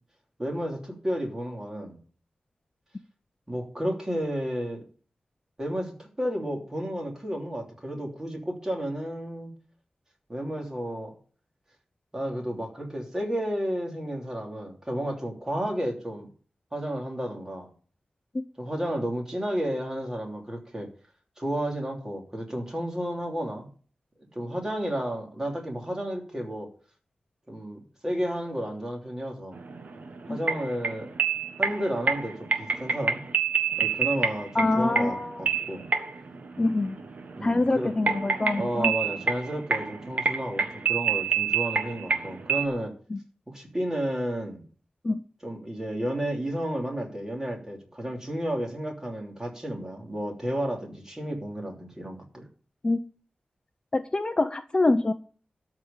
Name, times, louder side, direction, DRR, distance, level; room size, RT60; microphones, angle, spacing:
voice 1, 0.4-2.0 3.5-4.8 5.6-9.5 10.3-11.1 12.1-16.3 16.7-17.7 18.6-20.9 21.4-23.7 24.3-26.7 27.5-29.6 30.3-31.1 31.6-33.2 33.8-35.8 37.4-37.9 38.5-42.9 43.5-44.6 45.4-52.4, equal, 20° right, 1 dB, 3.2 m, -32 dB
sound 1, 29.5-42.7, right 5 dB, 60° right, 1.4 m, -27 dB
voice 2, 34.5-35.5 36.6-37.0 37.4-38.9 43.1-43.2 45.0-45.2 52.8-53.0 53.9-55.1, left 2 dB, 30° left, 9 dB, 0.7 m, -25 dB
13.0 x 4.9 x 8.8 m, 0.42 s
wide cardioid pair, 135°, 3 cm